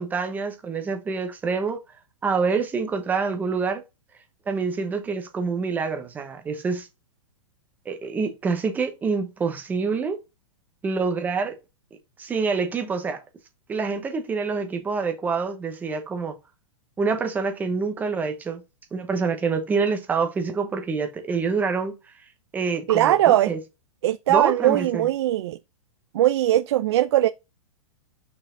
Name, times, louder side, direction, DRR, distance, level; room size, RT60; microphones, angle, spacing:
voice 1, 0.0-1.8 2.2-3.8 4.5-6.9 7.9-10.2 10.8-11.5 12.2-13.2 13.7-16.4 17.0-18.6 18.9-22.0 22.5-23.6 24.3-25.1, right 4 dB, 10° right, 0.8 m, -26 dB
voice 2, 22.9-23.5 24.0-25.6 26.1-27.3, right 13 dB, 50° right, 0.5 m, -20 dB
5.7 x 4.6 x 3.8 m
hypercardioid pair, 165°, 18 cm